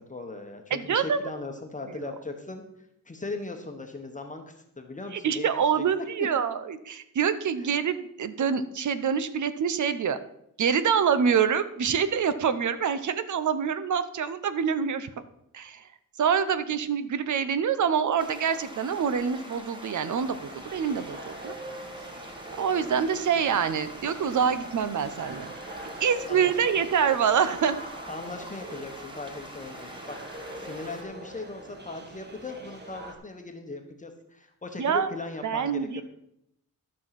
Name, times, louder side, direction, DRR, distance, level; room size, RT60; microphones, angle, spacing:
voice 1, 0.0-2.6 3.1-5.8 7.6-7.7 26.3-26.7 28.1-30.1 30.6-36.0, left 3 dB, 20° left, 4 dB, 1.1 m, -39 dB
voice 2, 0.7-1.2 1.9-2.1 5.1-10.2 10.6-15.1 15.5-15.8 16.2-21.5 22.6-25.5 25.8-27.8 34.8-35.1 35.4-36.0, right 7 dB, 60° right, 13 dB, 0.9 m, -26 dB
sound 1, 18.2-31.0, equal, 15° right, 1.6 m, -44 dB
sound 2, 20.2-33.1, right 1 dB, 30° right, 1.7 m, -44 dB
12.5 x 6.4 x 5.8 m, 0.78 s
wide cardioid pair, 145°, 34 cm